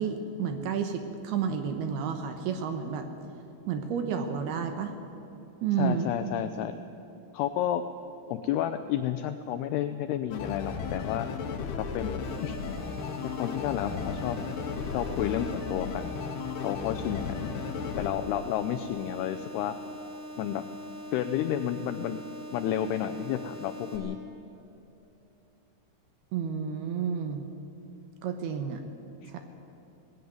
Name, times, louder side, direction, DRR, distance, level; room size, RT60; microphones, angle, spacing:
voice 1, 0.0-3.1 3.7-4.9 5.6-6.1 26.3-27.5 28.2-28.8 29.3-29.4, right 7 dB, 70° right, 7 dB, 2.6 m, -31 dB
voice 2, 5.8-6.7 7.3-7.8 8.3-11.3 11.7-12.6 13.2-14.4 14.9-16.1 16.6-17.5 18.0-19.8 20.4-20.6 21.1-22.2 22.5-24.2 29.2-29.3, left 11 dB, 85° left, 9 dB, 2.3 m, -31 dB
sound 1, 10.3-18.1, left 6 dB, 70° left, 3.1 m, -35 dB
sound 2, 12.2-24.0, equal, 10° left, 4.4 m, -42 dB
19.0 x 16.0 x 9.4 m, 2.9 s
omnidirectional pair, 5.4 m